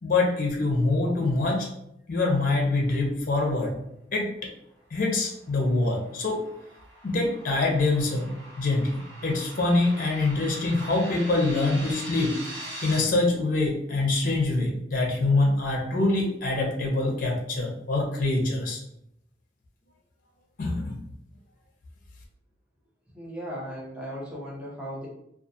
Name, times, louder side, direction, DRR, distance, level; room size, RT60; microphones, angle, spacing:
voice 1, 0.0-1.7 2.1-3.8 4.1-4.3 4.9-6.4 7.0-8.3 8.6-12.3 12.8-18.8 20.6-21.0, left 2 dB, 50° left, 0 dB, 0.6 m, -25 dB
sound 1, 5.3-13.0, right 1 dB, 75° right, 1.2 m, -42 dB
voice 2, 23.1-25.1, equal, 5° right, -6 dB, 0.8 m, -36 dB
2.3 x 2.3 x 2.7 m, 0.79 s
head